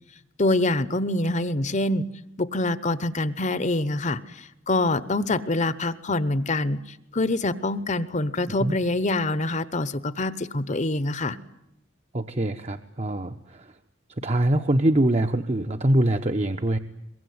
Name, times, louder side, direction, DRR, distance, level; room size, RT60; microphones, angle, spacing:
voice 1, 0.4-2.1 2.4-6.8 7.1-11.4, left 2 dB, 35° left, 15 dB, 1.0 m, -25 dB
voice 2, 12.1-13.7 14.2-16.8, right 1 dB, 35° right, 7 dB, 1.0 m, -23 dB
23.0 x 22.5 x 9.5 m, 0.86 s
head